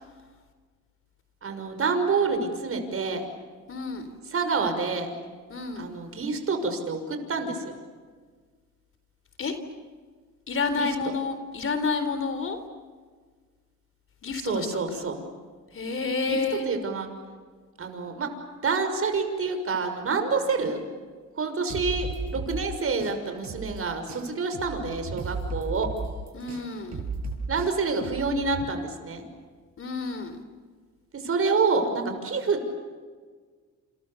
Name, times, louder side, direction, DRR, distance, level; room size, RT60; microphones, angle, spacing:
voice 1, 1.4-3.2 4.3-5.1 5.8-7.8 10.8-10.9 14.4-15.2 16.3-17.1 17.8-18.3 18.6-20.8 21.4-25.9 27.5-29.3 31.1-32.7, right 4 dB, 45° right, 7 dB, 6.1 m, -27 dB
voice 2, 3.7-4.1 5.5-5.9 9.4-9.5 10.5-12.6 14.2-15.1 15.7-16.7 26.3-27.0 29.8-30.4, left 4 dB, 45° left, 9 dB, 3.8 m, -29 dB
sound 1, 21.7-23.8 24.1-28.7, right 3 dB, 65° right, 6.6 m, -35 dB
29.5 x 28.5 x 7.2 m, 1.5 s
cardioid pair, 90°, 30 cm